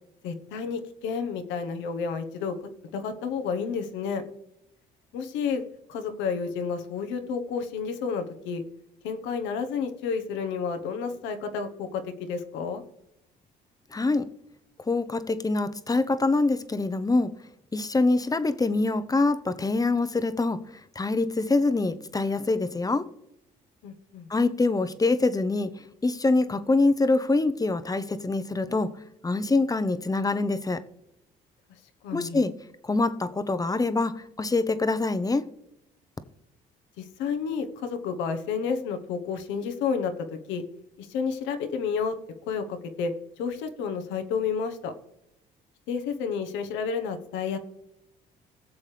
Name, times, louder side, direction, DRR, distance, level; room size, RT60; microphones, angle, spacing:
voice 1, 0.2-2.6 2.9-4.2 5.1-5.6 5.9-8.6 9.0-12.8 23.8-24.3 32.0-32.4 37.0-40.1 40.5-40.6 41.0-42.2 42.5-44.9 45.9-47.6, left 6 dB, 80° left, 7 dB, 1.1 m, -30 dB
voice 2, 13.9-14.3 14.9-17.3 17.7-20.6 20.9-23.1 24.3-25.7 26.0-28.9 29.2-30.8 32.1-32.5 32.8-35.4, left 3 dB, 20° left, 12 dB, 0.8 m, -25 dB
17.5 x 7.1 x 3.4 m, 0.86 s
supercardioid pair, 70°, 19 cm